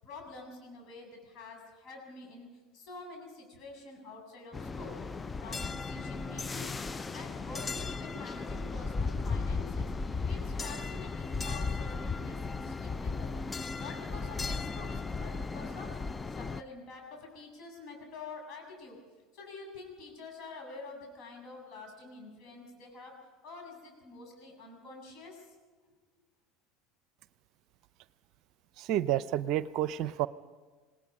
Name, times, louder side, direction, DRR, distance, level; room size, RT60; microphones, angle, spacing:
voice 1, 0.0-5.0 5.4-6.7 7.1-13.3 13.8-16.0 16.3-19.0 19.3-23.1 23.4-25.5, left 3 dB, 50° left, 2 dB, 7.8 m, -47 dB
sound 1, 4.5-16.6, left 4 dB, 20° left, 0.6 m, -36 dB
voice 2, 28.8-30.3, right 12 dB, 55° right, 17 dB, 0.6 m, -30 dB
27.5 x 19.0 x 5.4 m, 1.4 s
figure-of-eight pair, 70°, 0 cm